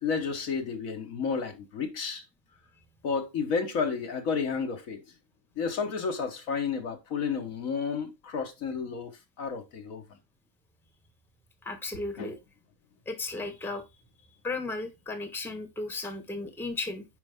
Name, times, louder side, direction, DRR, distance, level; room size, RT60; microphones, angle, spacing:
voice 1, 0.0-2.2 3.0-5.0 5.6-9.1 9.4-10.0 12.2-12.4, left 5 dB, 70° left, 1.5 m, -31 dB
voice 2, 11.6-12.3 13.1-13.8 14.4-17.0, left 3 dB, ahead, 1.2 m, -35 dB
9.8 x 4.8 x 3.5 m
omnidirectional pair, 1.5 m